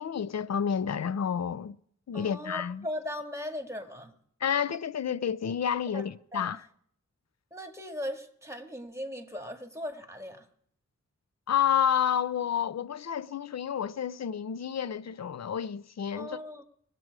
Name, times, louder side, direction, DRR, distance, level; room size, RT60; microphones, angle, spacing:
voice 1, 0.0-1.7 2.1-2.8 4.4-6.6 11.5-16.4, left 8 dB, 60° left, 0.5 m, -30 dB
voice 2, 2.1-4.1 5.9-6.0 6.3-6.6 7.5-10.5 16.2-16.6, left 1 dB, 10° right, 1.8 m, -38 dB
21.0 x 7.6 x 4.7 m
wide cardioid pair, 70°, 31 cm